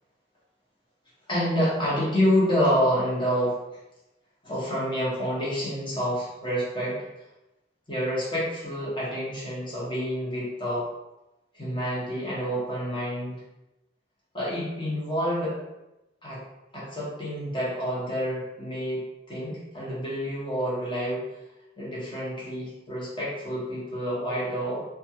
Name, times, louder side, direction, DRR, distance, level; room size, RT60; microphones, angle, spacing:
voice 1, 1.3-3.6 4.4-7.0 7.9-10.9 11.5-13.4 14.3-15.6 16.2-16.4 16.7-19.0 19.3-21.2 21.8-24.8, equal, 25° left, -7 dB, 1.0 m, -28 dB
2.6 x 2.3 x 2.8 m, 0.97 s
head